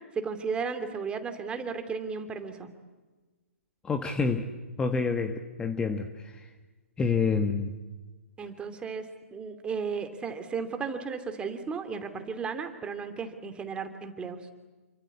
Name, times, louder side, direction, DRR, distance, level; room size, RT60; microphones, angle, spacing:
voice 1, 0.2-2.7 8.4-9.0 9.3-14.4, right 5 dB, 15° right, 8 dB, 2.8 m, -34 dB
voice 2, 3.8-4.5 4.8-6.5 7.0-7.7, left 4 dB, 10° left, 6 dB, 1.5 m, -28 dB
29.0 x 24.5 x 8.5 m, 1.2 s
figure-of-eight pair, 125°, 7 cm